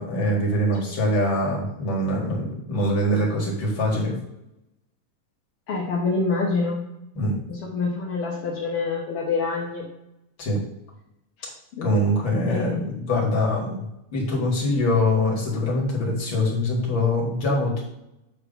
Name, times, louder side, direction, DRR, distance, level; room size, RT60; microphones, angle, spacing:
voice 1, 0.0-4.1 7.2-7.3 10.4-10.6 11.8-13.9 14.1-17.8, left 1 dB, 40° left, -2 dB, 2.1 m, -23 dB
voice 2, 5.7-6.8 7.5-9.9 11.7-11.9 12.4-12.9, left 4 dB, 65° left, -4 dB, 1.5 m, -26 dB
8.4 x 3.2 x 6.4 m, 0.86 s
omnidirectional pair, 3.7 m